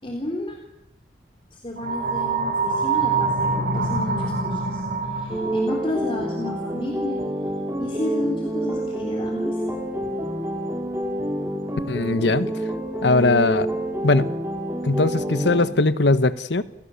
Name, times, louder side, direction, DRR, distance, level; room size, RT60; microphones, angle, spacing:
voice 1, 0.0-0.6 1.5-7.2 7.8-9.6, left 2 dB, 30° left, 0 dB, 3.6 m, -31 dB
sound 1, 1.8-5.7, right 4 dB, 60° right, 3.1 m, -24 dB
sound 2, 5.3-15.7, right 1 dB, 15° right, 3.4 m, -28 dB
voice 2, 11.9-12.5 13.0-13.7 14.0-14.3 14.8-16.6, left 2 dB, 80° left, 13 dB, 1.2 m, -20 dB
30.0 x 17.0 x 7.1 m, 0.86 s
head